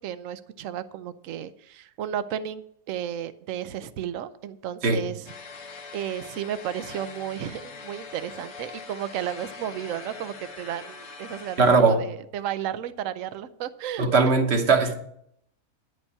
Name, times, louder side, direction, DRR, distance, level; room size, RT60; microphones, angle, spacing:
voice 1, 0.0-5.3 5.9-14.1, right 10 dB, 65° right, 13 dB, 1.0 m, -33 dB
sound 1, 5.3-11.8, left 4 dB, 50° left, 1.2 m, -42 dB
voice 2, 11.6-12.0 14.0-14.9, right 4 dB, 45° right, 6 dB, 1.4 m, -19 dB
10.0 x 5.3 x 8.3 m, 0.70 s
omnidirectional pair, 1.6 m